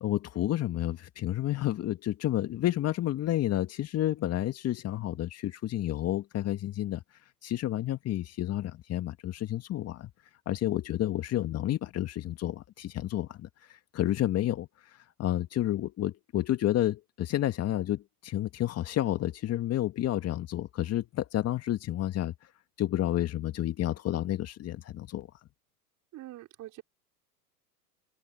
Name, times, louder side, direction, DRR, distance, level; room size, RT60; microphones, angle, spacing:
voice 1, 0.0-7.0 7.4-10.1 10.5-14.7 15.2-22.3 22.8-25.3, left 13 dB, 30° left, 2.0 m, -30 dB
voice 2, 26.1-26.8, right 15 dB, 40° right, 4.6 m, -44 dB
hypercardioid pair, 105°, 47 cm